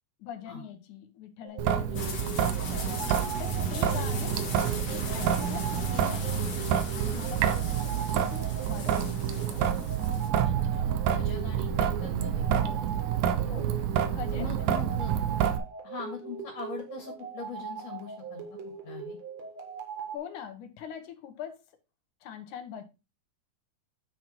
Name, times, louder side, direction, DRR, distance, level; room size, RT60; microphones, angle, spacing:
voice 1, 0.2-3.0 3.4-6.6 6.9-9.6 12.5-12.9 13.4-13.7 14.1-14.5 20.1-21.6 22.2-22.8, left 8 dB, 80° left, 2.6 m, -43 dB
sound 1, 1.4-20.2, right 6 dB, 60° right, 2.7 m, -41 dB
Traffic noise roadway noise / Drip / Trickle dribble, 1.6-15.6, right 9 dB, 80° right, 2.2 m, -28 dB
sound 2, 1.9-10.3, left 4 dB, 45° left, 1.6 m, -40 dB
voice 2, 7.4-7.7 10.4-12.9 13.2-13.8 14.3-15.1 15.8-19.2, left 5 dB, 60° left, 3.1 m, -42 dB
9.0 x 4.7 x 4.5 m
omnidirectional pair, 3.5 m